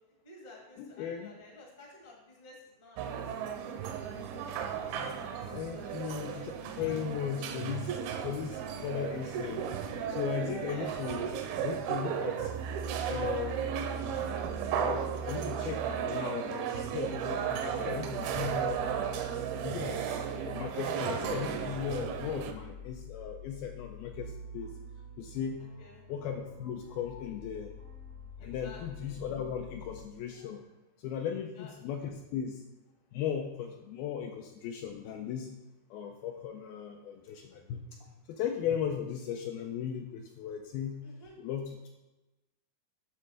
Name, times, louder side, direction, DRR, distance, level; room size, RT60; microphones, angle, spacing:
voice 1, 0.2-3.6 4.2-4.3 4.8-6.9 7.7-7.9 8.8-9.0 10.4-11.0 25.8-26.0 28.4-29.2 31.6-31.7 41.0-41.3, left 2 dB, 40° left, -2 dB, 0.6 m, -52 dB
voice 2, 0.8-1.3 4.9-5.1 5.5-6.5 6.8-9.7 10.1-11.3 11.6-12.5 13.1-13.8 14.7-18.9 19.6-24.7 25.2-25.6 26.1-27.7 28.4-30.6 31.0-32.6 33.1-35.5 35.9-41.0 41.4-41.9, left 8 dB, 85° left, 3 dB, 2.2 m, -37 dB
sound 1, 3.0-22.5, right 8 dB, 80° right, 2.3 m, -35 dB
sound 2, 18.3-30.0, left 1 dB, 55° right, 0.4 m, -48 dB
9.7 x 3.3 x 6.5 m, 1.1 s
omnidirectional pair, 4.8 m